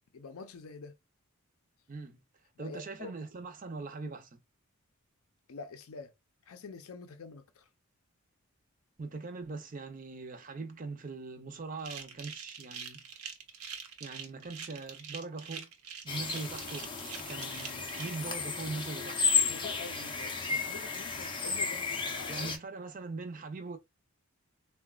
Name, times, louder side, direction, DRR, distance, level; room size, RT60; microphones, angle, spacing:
voice 1, 0.1-0.9 2.6-3.1 5.5-6.1 6.5-7.6 19.5-22.5, left 4 dB, 75° left, 0.5 m, -46 dB
voice 2, 1.9-2.2 2.6-4.4 9.0-13.0 14.0-15.7 16.0-16.9 17.3-19.2 22.3-23.8, right 3 dB, 35° right, 0.5 m, -41 dB
sound 1, 11.8-18.1, right 7 dB, 80° right, 0.7 m, -44 dB
sound 2, 16.1-22.6, left 5 dB, 20° left, 0.5 m, -33 dB
3.8 x 2.2 x 2.3 m
head